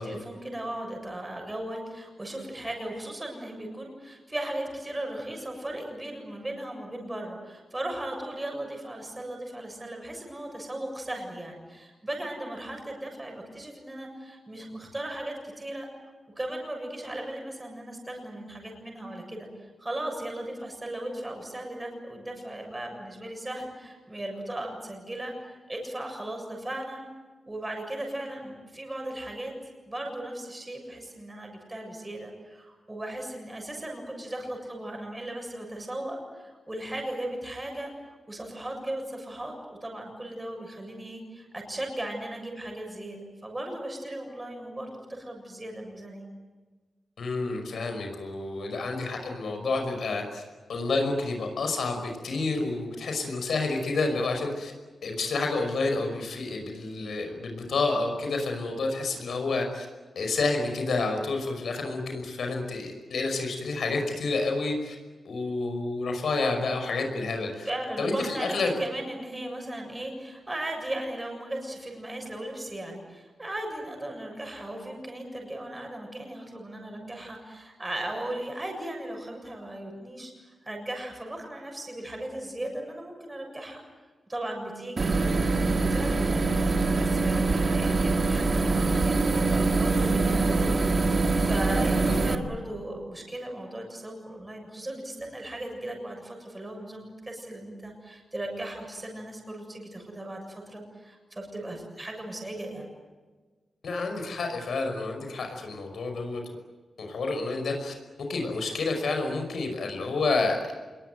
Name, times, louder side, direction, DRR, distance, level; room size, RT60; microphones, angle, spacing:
voice 1, 0.0-15.9 16.4-19.5 19.8-27.0 27.5-29.5 29.9-37.9 38.3-46.3 67.6-83.8 84.3-90.9 91.1-102.9, right 1 dB, 15° right, 2 dB, 7.1 m, -37 dB
voice 2, 47.2-50.4 50.7-54.7 55.0-59.9 60.2-65.0 65.2-67.7 68.0-68.7 92.0-92.2 103.8-106.4 107.0-110.6, left 3 dB, 75° left, 3 dB, 5.5 m, -29 dB
sound 1, 85.0-92.4, right 3 dB, 40° right, 1.9 m, -24 dB
27.5 x 22.0 x 9.4 m, 1.3 s
wide cardioid pair, 135°, 0 cm